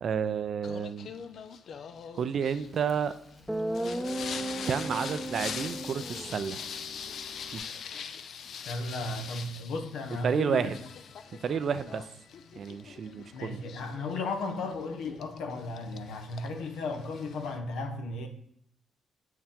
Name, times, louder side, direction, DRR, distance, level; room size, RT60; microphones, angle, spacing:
voice 1, 0.0-1.1 2.1-3.1 4.7-6.6 7.5-7.6 10.2-10.8 11.4-12.0 12.6-13.6, right 7 dB, 55° right, 12 dB, 0.4 m, -30 dB
Singing, 0.6-17.6, left 7 dB, 60° left, 0.4 m, -43 dB
Guitar, 2.9-3.0 3.5-7.6, right 1 dB, ahead, 0.7 m, -36 dB
voice 2, 8.6-10.7 13.3-18.3, left 3 dB, 85° left, 4 dB, 0.9 m, -35 dB
7.5 x 4.6 x 3.6 m, 0.67 s
cardioid pair, 90°, 0 cm